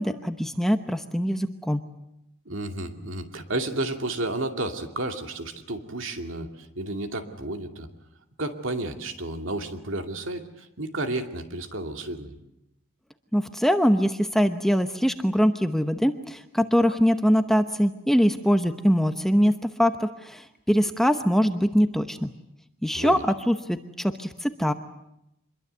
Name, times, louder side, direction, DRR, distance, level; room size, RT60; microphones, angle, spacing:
voice 1, 0.0-1.8 13.3-22.3 22.8-24.7, equal, ahead, 7 dB, 0.9 m, -23 dB
voice 2, 2.5-7.9 8.4-12.3 22.9-23.2, right 2 dB, 60° right, 5 dB, 2.5 m, -32 dB
26.0 x 22.0 x 8.1 m, 0.86 s
head